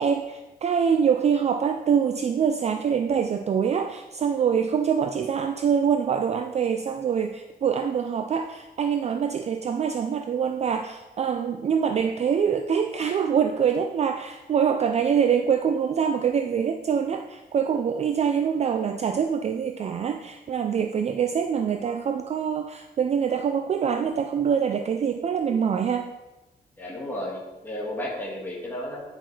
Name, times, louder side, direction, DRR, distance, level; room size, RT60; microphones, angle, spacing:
voice 1, 0.0-26.1, right 7 dB, 40° right, 6 dB, 0.3 m, -25 dB
voice 2, 26.8-29.0, left 1 dB, 10° left, -4 dB, 1.7 m, -33 dB
10.0 x 5.8 x 3.2 m, 1.1 s
wide cardioid pair, 165°, 18 cm